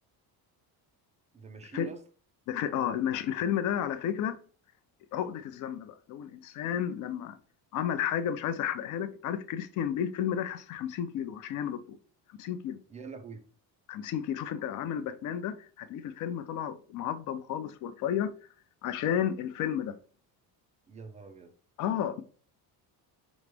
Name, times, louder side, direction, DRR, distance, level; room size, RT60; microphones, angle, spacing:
voice 1, 1.3-2.0 12.9-13.4 20.9-21.5, right 3 dB, 20° right, 0.3 m, -44 dB
voice 2, 2.5-4.4 5.1-7.4 7.7-12.0 12.4-12.8 13.9-18.3 18.8-20.0 21.8-22.2, left 9 dB, 50° left, 0.5 m, -32 dB
5.0 x 3.1 x 3.3 m
cardioid pair, 175°, 40 cm